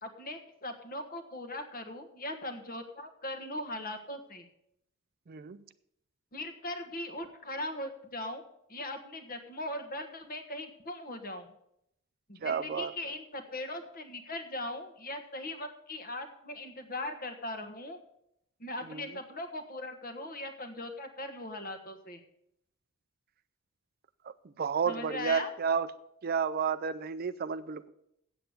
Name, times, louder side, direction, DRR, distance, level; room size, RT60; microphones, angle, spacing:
voice 1, 0.0-4.4 6.3-8.4 8.7-11.5 12.3-18.0 18.6-22.2 24.8-25.5, left 1 dB, 40° left, 8 dB, 1.3 m, -39 dB
voice 2, 5.3-5.6 12.4-12.9 18.9-19.1 24.6-25.9 26.2-27.9, right 6 dB, 45° right, 14 dB, 0.4 m, -31 dB
8.1 x 7.9 x 8.1 m, 0.76 s
head